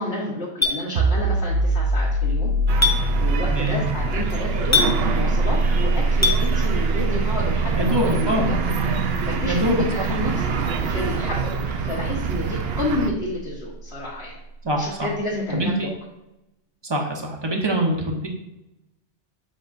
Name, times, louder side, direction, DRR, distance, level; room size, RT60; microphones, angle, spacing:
voice 1, 0.0-2.5 3.1-8.5 9.2-14.3 14.7-15.9, left 2 dB, 60° left, -6 dB, 1.5 m, -30 dB
Chink clink, 0.6-0.8 2.8-3.0 4.7-4.9 6.2-6.4, left 3 dB, 20° left, 0.5 m, -18 dB
sound 1, 1.0-12.4, right 2 dB, 80° right, 1.1 m, -24 dB
sound 2, 2.7-13.1, right 5 dB, 65° right, 0.8 m, -27 dB
voice 2, 3.5-3.8 7.7-8.5 9.4-10.0 14.6-15.1 15.5-15.9 16.8-18.3, right 1 dB, 25° right, 1 dB, 1.0 m, -24 dB
7.5 x 5.3 x 2.6 m, 0.91 s
omnidirectional pair, 1.2 m